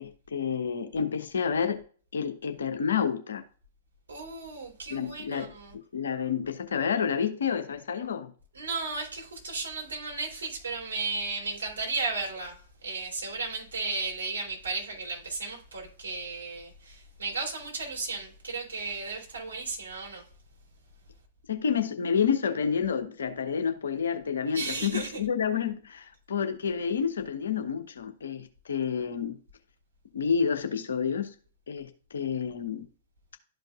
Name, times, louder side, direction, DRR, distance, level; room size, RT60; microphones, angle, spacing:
voice 1, 0.0-1.8 2.1-3.4 4.9-5.5 5.9-8.3 21.5-29.4 30.1-31.3 31.7-32.8, left 7 dB, 65° left, 1.0 m, -29 dB
voice 2, 4.1-5.7 8.5-20.3 24.5-25.2, right 3 dB, 70° right, 3.2 m, -34 dB
12.5 x 5.1 x 2.4 m
figure-of-eight pair, 105°, 0 cm